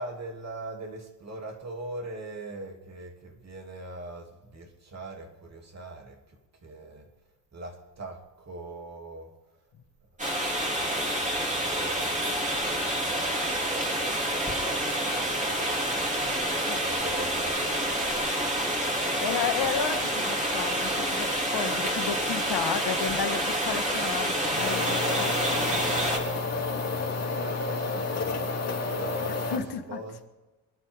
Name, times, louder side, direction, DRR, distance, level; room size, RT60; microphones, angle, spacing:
voice 1, 0.0-6.2 6.6-7.1 7.5-9.3 10.8-14.1 14.5-16.3 16.8-19.0 25.8-30.3, right 2 dB, 40° right, 3.1 m, -42 dB
sound 1, 10.2-26.2, right 1 dB, 15° right, 3.4 m, -28 dB
voice 2, 19.2-25.8 29.3-30.0, left 7 dB, 65° left, 1.7 m, -33 dB
sound 2, 24.6-29.6, left 3 dB, 35° left, 2.6 m, -30 dB
26.5 x 11.5 x 3.7 m
cardioid pair, 135°, 42 cm